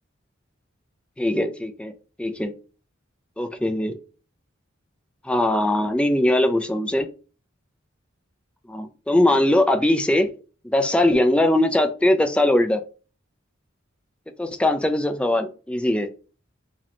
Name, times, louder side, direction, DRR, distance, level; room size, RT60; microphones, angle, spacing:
voice 1, 1.2-1.9 2.2-2.5 3.4-4.0 5.2-7.1 8.7-10.3 10.6-12.8 14.4-16.1, left 1 dB, 5° left, 6 dB, 0.3 m, -21 dB
4.9 x 2.2 x 2.9 m, 0.37 s
head